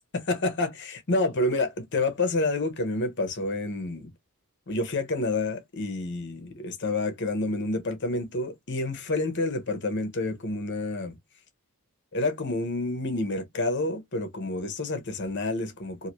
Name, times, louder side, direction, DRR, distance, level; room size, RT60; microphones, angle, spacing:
voice 1, 0.1-4.1 4.7-11.1 12.1-16.1, left 2 dB, 55° left, 0.9 m, -28 dB
2.8 x 2.6 x 3.0 m
head